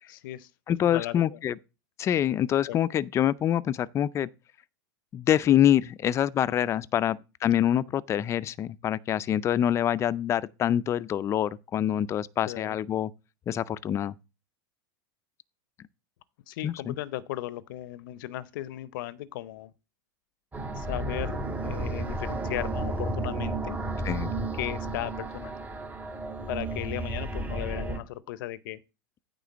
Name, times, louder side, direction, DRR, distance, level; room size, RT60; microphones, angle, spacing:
voice 1, 0.1-0.5 0.8-1.4 2.7-2.8 12.5-12.8 16.5-19.7 20.7-23.8 24.5-25.6 26.5-28.8, left 15 dB, 70° left, 0.6 m, -36 dB
voice 2, 0.7-1.6 2.0-4.3 5.1-13.1 13.5-14.1 16.6-16.9 24.0-24.3, left 10 dB, 25° left, 0.4 m, -25 dB
sound 1, 20.5-28.0, right 2 dB, 15° right, 1.3 m, -32 dB
9.2 x 3.7 x 7.1 m
supercardioid pair, 130°, 11 cm